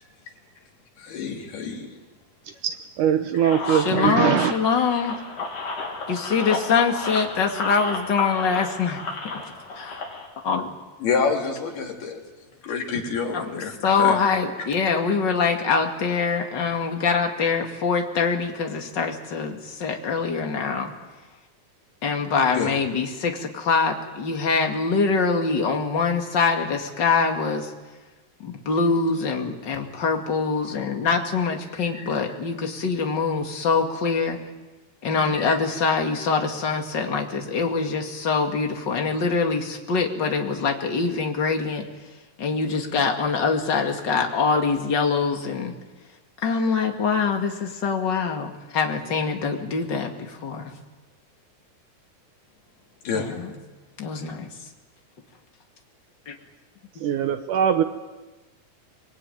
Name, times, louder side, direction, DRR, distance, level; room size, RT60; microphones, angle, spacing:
voice 1, 1.0-1.9 3.3-3.7 4.0-4.2 4.9-5.0 11.0-12.2 12.6-13.7 14.0-14.2 14.6-14.7 22.5-22.7 31.9-32.1 35.3-35.6 53.0-53.3, left 5 dB, 85° left, 1 dB, 5.2 m, -28 dB
voice 2, 2.6-4.5 57.0-57.8, right 9 dB, 70° right, 8 dB, 2.2 m, -22 dB
sound 1, 3.4-10.3, left 3 dB, 55° left, 5.0 m, -32 dB
voice 3, 3.6-5.2 6.1-9.0 9.8-10.0 10.4-10.7 13.3-20.9 22.0-27.7 28.4-34.4 35.0-41.9 42.4-45.7 46.4-50.7 53.1-53.5 54.0-54.5 56.3-56.4, left 5 dB, 35° left, 3 dB, 2.3 m, -24 dB
25.0 x 22.5 x 9.4 m, 1.2 s
omnidirectional pair, 4.3 m